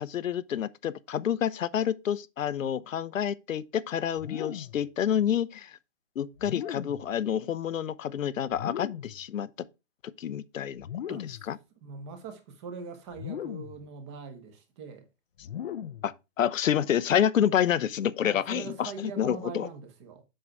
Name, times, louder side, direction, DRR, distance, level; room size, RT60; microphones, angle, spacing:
voice 1, 0.0-5.8 6.2-9.5 10.2-11.6 16.0-19.7, left 9 dB, 85° left, 0.8 m, -28 dB
sound 1, 4.2-4.9 6.4-7.1 8.5-9.2 10.8-11.5 13.1-13.9 15.4-16.1, left 9 dB, 50° left, 0.6 m, -38 dB
voice 2, 11.1-11.4 11.8-15.1 18.2-20.2, right 5 dB, 20° right, 1.2 m, -42 dB
7.8 x 5.6 x 4.7 m
hypercardioid pair, 170°, 38 cm